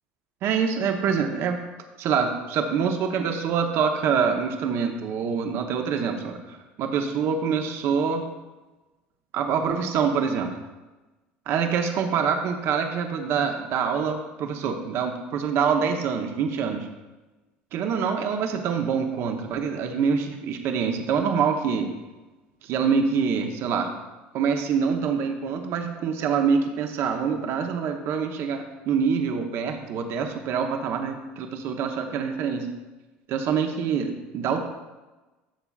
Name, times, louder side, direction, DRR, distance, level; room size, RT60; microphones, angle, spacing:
voice 1, 0.4-1.6 2.0-8.2 9.3-10.5 11.5-16.9 17.7-21.9 22.6-23.9 24.3-32.7 33.3-34.7, right 6 dB, 55° right, 4 dB, 0.8 m, -25 dB
11.5 x 6.8 x 2.4 m, 1.2 s
hypercardioid pair, 75°, 5 cm